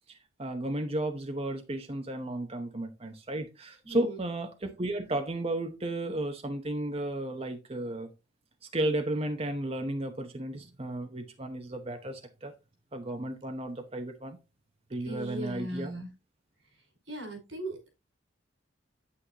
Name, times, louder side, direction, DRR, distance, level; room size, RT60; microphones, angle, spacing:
voice 1, 0.1-8.1 8.7-12.5 12.9-14.4 14.9-15.9, right 1 dB, 30° right, 0.9 m, -33 dB
voice 2, 3.8-4.2 15.0-16.1 17.1-17.9, right 1 dB, 85° right, 5.2 m, -38 dB
9.5 x 8.5 x 2.9 m
head